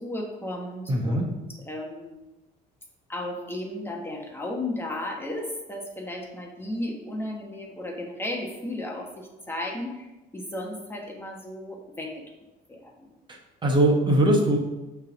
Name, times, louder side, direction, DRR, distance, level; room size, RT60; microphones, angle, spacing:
voice 1, 0.0-2.2 3.1-12.2 12.7-13.1, left 1 dB, 15° left, 0 dB, 1.1 m, -34 dB
voice 2, 0.9-1.3 13.3-14.6, right 1 dB, 30° right, 1 dB, 1.2 m, -21 dB
6.4 x 3.6 x 6.1 m, 1.0 s
cardioid pair, 110°, 17 cm